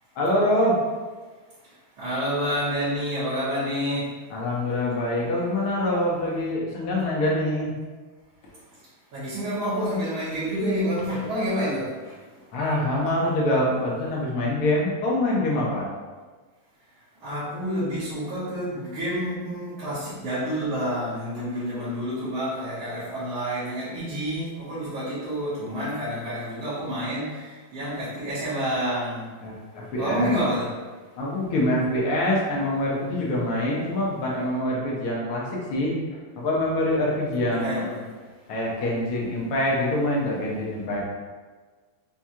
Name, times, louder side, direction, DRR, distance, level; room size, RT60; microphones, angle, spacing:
voice 1, 0.2-0.8 4.3-7.7 11.5-11.7 12.5-15.9 29.4-30.3 31.2-35.9 36.4-37.9 38.5-41.0, left 1 dB, 90° left, -4 dB, 1.8 m, -25 dB
voice 2, 2.0-4.1 9.1-11.9 17.2-27.3 27.7-29.3 30.0-30.7 37.5-38.0, equal, 70° right, -14 dB, 2.1 m, -28 dB
5.9 x 2.4 x 2.8 m, 1.4 s
omnidirectional pair, 2.3 m